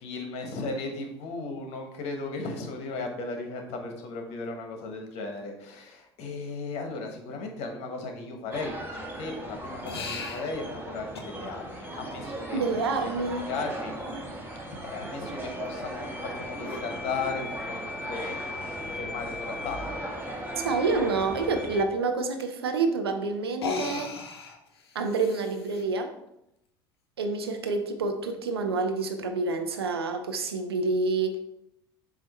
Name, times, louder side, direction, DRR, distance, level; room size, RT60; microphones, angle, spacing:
voice 1, 0.0-8.9 9.2-12.6 13.0-13.1 13.5-14.0 14.8-19.8, left 3 dB, 55° left, 3 dB, 1.4 m, -36 dB
sound 1, 8.5-21.8, equal, 15° right, 1.6 m, -37 dB
sound 2, 9.8-10.5 11.1-11.3 13.4-13.5 16.6-16.9 18.3-18.4 18.8-18.9 19.2-19.3 22.4-22.5 23.5-25.8, left 4 dB, 80° left, 0.8 m, -36 dB
voice 2, 12.5-13.5 20.6-24.1 24.9-26.1 27.2-31.4, right 3 dB, 85° right, 6 dB, 0.7 m, -28 dB
7.5 x 2.9 x 4.3 m, 0.82 s
figure-of-eight pair, 65°, 13 cm